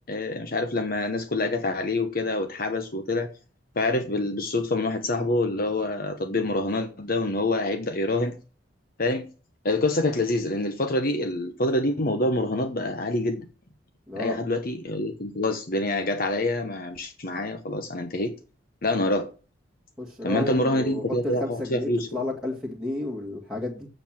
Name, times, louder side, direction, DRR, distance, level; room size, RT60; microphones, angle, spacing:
voice 1, 0.1-3.3 3.8-8.3 9.0-9.3 9.6-13.5 14.2-18.3 18.8-19.3 20.2-22.2, left 2 dB, 50° left, 7 dB, 1.0 m, -26 dB
voice 2, 14.1-14.4 20.0-23.9, left 2 dB, 5° right, -4 dB, 1.9 m, -32 dB
7.7 x 7.1 x 7.4 m, 0.36 s
head